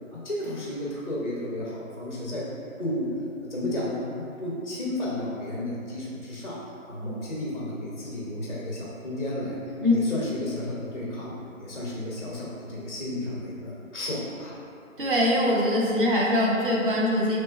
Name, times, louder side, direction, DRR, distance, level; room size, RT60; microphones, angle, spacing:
voice 1, 0.1-2.5 2.8-3.1 3.5-6.6 6.9-9.6 9.9-14.5, left 1 dB, 35° left, -6 dB, 0.5 m, -32 dB
voice 2, 15.0-17.4, left 1 dB, 40° right, -5 dB, 0.6 m, -22 dB
5.7 x 3.1 x 2.2 m, 2.7 s
hypercardioid pair, 170°, 41 cm